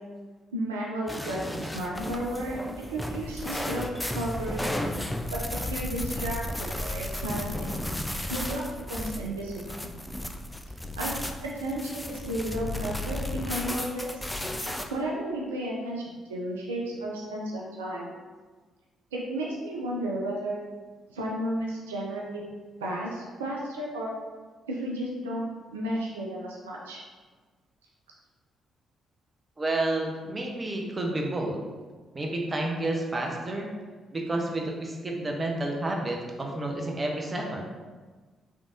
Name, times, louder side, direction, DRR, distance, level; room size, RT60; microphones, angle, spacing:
voice 1, 0.5-4.7 5.3-7.8 8.3-9.9 10.9-11.1 11.5-14.3 14.9-18.1 19.1-20.6 21.1-22.4 22.8-24.1 24.7-27.0, right 1 dB, 85° right, -3 dB, 0.4 m, -33 dB
sound 1, 1.1-14.8, left 1 dB, 10° left, 0.4 m, -34 dB
voice 2, 29.6-31.6 32.1-33.7 34.1-37.7, right 2 dB, 30° right, 0 dB, 0.7 m, -30 dB
3.6 x 3.3 x 2.5 m, 1.4 s
hypercardioid pair, 45°, 0 cm